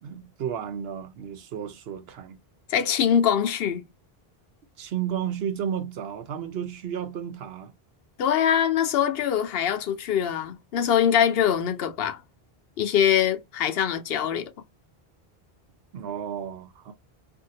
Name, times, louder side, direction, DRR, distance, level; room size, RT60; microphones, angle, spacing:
voice 1, 0.0-2.4 4.8-7.7 15.9-16.9, right 9 dB, 75° right, 0.9 m, -33 dB
voice 2, 2.7-3.8 8.2-12.2 12.8-14.5, left 9 dB, 70° left, 0.8 m, -23 dB
2.7 x 2.6 x 2.7 m
omnidirectional pair, 1.0 m